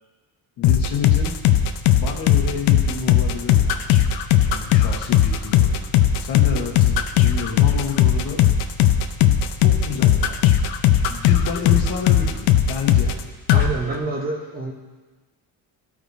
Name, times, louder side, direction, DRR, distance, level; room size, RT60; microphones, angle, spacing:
sound 1, 0.6-13.2 13.5-13.7, left 10 dB, 75° left, 0.6 m, -17 dB
voice 1, 0.6-1.3 1.9-3.8 4.5-5.8 6.2-8.4 9.6-10.4 11.1-13.1, left 5 dB, 55° left, 0 dB, 1.3 m, -29 dB
voice 2, 13.5-14.7, right 2 dB, 20° right, 0 dB, 0.9 m, -27 dB
14.0 x 4.8 x 2.6 m, 1.3 s
cardioid pair, 140°, 40 cm